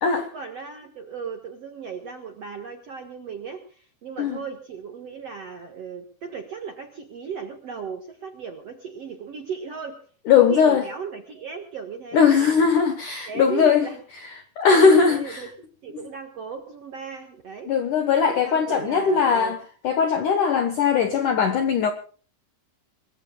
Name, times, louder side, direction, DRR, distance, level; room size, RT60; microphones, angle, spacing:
voice 1, 0.2-10.0 10.4-12.7 13.3-14.4 14.7-15.5 15.8-17.7 18.2-19.5, right 6 dB, 70° right, 1.5 m, -36 dB
voice 2, 10.3-10.8 12.1-13.9 14.4-15.5 17.7-19.6 19.8-21.9, left 6 dB, 70° left, 2.0 m, -19 dB
24.5 x 22.0 x 2.3 m
omnidirectional pair, 5.4 m